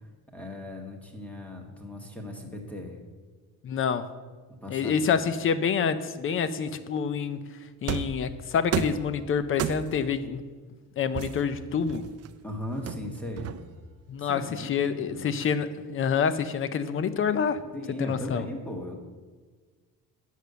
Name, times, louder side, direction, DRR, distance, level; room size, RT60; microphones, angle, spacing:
voice 1, 0.3-3.0 4.5-5.2 12.4-13.6 14.2-15.3 17.7-18.9, left 1 dB, 5° left, 2 dB, 1.4 m, -38 dB
voice 2, 3.6-4.1 4.7-7.4 7.8-10.4 11.0-12.1 14.1-17.6 18.0-18.4, left 6 dB, 35° left, 13 dB, 0.6 m, -27 dB
sound 1, 7.9-8.2 8.7-9.1 9.6-10.1 11.1-12.3 12.9-13.9, right 9 dB, 45° right, 0.5 m, -32 dB
10.0 x 6.6 x 6.8 m, 1.4 s
cardioid pair, 155°, 37 cm